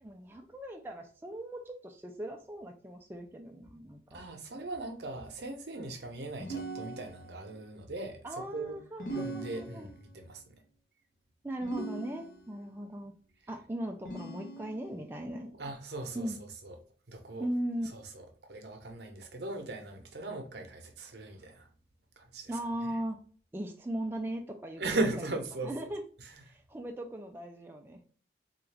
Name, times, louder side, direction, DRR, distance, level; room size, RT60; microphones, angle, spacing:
voice 1, 0.0-4.2 8.2-9.9 11.4-13.1 13.5-15.5 16.1-16.4 17.4-18.0 22.5-23.2 23.5-24.8 25.2-25.3 25.6-26.0 26.4-28.1, right 1 dB, 10° right, 0.3 m, -38 dB
voice 2, 4.1-8.2 8.5-8.8 9.1-10.4 15.4-16.3 16.6-16.8 17.1-17.5 17.9-18.0 18.5-21.7 22.2-22.5 24.8-25.7, right 2 dB, 75° right, 0.7 m, -38 dB
sound 1, 6.4-7.5 9.0-10.2 11.6-12.7 14.0-15.0, right 2 dB, 55° left, 0.8 m, -40 dB
3.8 x 2.3 x 3.2 m
head